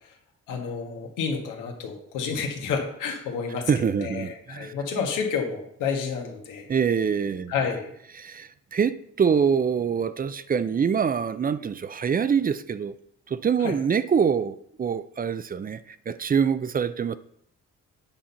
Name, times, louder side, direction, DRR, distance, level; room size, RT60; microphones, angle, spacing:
voice 1, 0.5-3.7 4.0-6.7 7.5-7.9 13.6-13.7, left 5 dB, 90° left, 2 dB, 1.7 m, -30 dB
voice 2, 3.7-4.7 6.7-7.5 8.1-12.9 13.3-17.2, right 7 dB, 30° right, 14 dB, 0.5 m, -25 dB
8.9 x 4.4 x 5.6 m, 0.70 s
cardioid pair, 90°, 30 cm